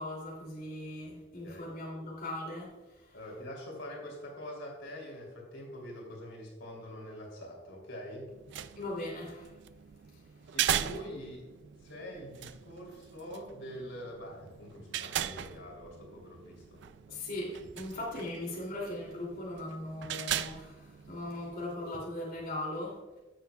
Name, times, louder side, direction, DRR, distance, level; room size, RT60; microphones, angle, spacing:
voice 1, 0.0-3.2 8.8-9.5 10.1-10.2 17.1-23.0, left 1 dB, 50° left, -4 dB, 2.7 m, -39 dB
voice 2, 3.1-8.3 10.5-11.4 11.8-16.8, equal, 85° left, -1 dB, 3.0 m, -44 dB
sound 1, 8.3-21.7, right 10 dB, 65° right, 0.4 m, -39 dB
16.0 x 7.0 x 2.3 m, 1.1 s
head